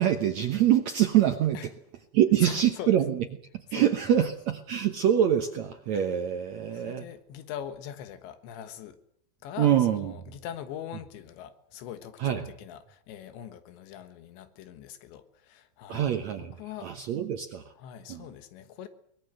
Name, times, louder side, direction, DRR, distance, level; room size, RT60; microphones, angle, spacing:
voice 1, 0.0-1.6 2.1-3.2 3.7-7.0 9.6-10.1 12.2-12.5 15.9-16.6 16.8-17.6 18.1-18.2, right 10 dB, 80° right, 6 dB, 1.6 m, -25 dB
voice 2, 2.4-3.0 3.7-4.3 6.7-9.0 9.4-16.1 16.4-16.9 17.8-18.9, left 10 dB, 90° left, 11 dB, 3.7 m, -42 dB
23.0 x 20.0 x 7.8 m, 0.68 s
omnidirectional pair, 4.9 m